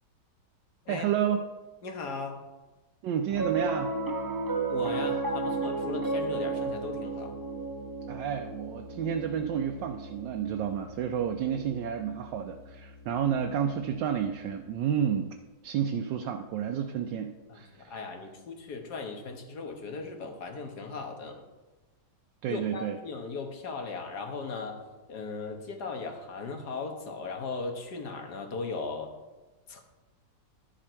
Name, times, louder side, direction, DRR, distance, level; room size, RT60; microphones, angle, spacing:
voice 1, 0.9-1.4 3.0-3.9 8.1-15.3 15.6-17.9 22.4-23.0, right 8 dB, 80° right, 4 dB, 1.3 m, -30 dB
voice 2, 1.8-2.5 4.7-7.4 17.5-21.4 22.5-24.8 25.1-29.1 29.7-29.8, left 4 dB, 65° left, 4 dB, 1.8 m, -37 dB
Piano, 3.3-13.8, right 3 dB, 35° right, 0.3 m, -34 dB
12.0 x 7.5 x 4.4 m, 1.2 s
omnidirectional pair, 2.0 m